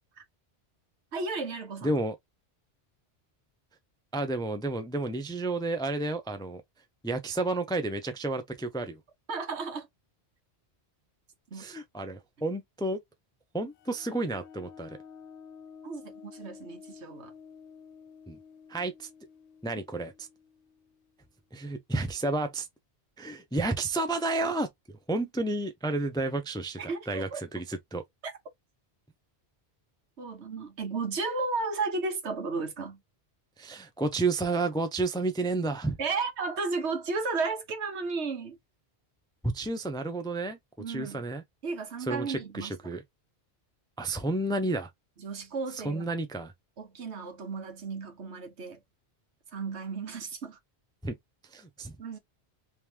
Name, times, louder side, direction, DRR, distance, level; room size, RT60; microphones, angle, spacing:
voice 1, 1.1-1.9 9.3-9.9 11.5-11.6 15.8-17.3 26.8-27.4 28.2-28.3 30.2-33.0 36.0-38.6 40.8-41.3 41.6-42.8 45.2-46.1 46.8-48.8 49.5-50.6 52.0-52.2, right 4 dB, 85° right, 1.4 m, -34 dB
voice 2, 1.8-2.2 4.1-6.6 7.0-9.0 11.5-13.0 13.5-15.0 18.3-18.4 18.7-19.1 19.6-20.3 21.5-22.7 23.2-24.7 25.1-26.8 27.1-28.0 33.6-36.0 39.4-40.6 40.9-41.4 42.1-43.0 44.0-44.9 45.7-46.5 51.0-51.2 51.5-52.2, right 2 dB, 5° left, 0.4 m, -31 dB
sound 1, 13.8-21.2, left 6 dB, 85° left, 0.9 m, -51 dB
3.5 x 3.1 x 2.8 m
omnidirectional pair, 1.1 m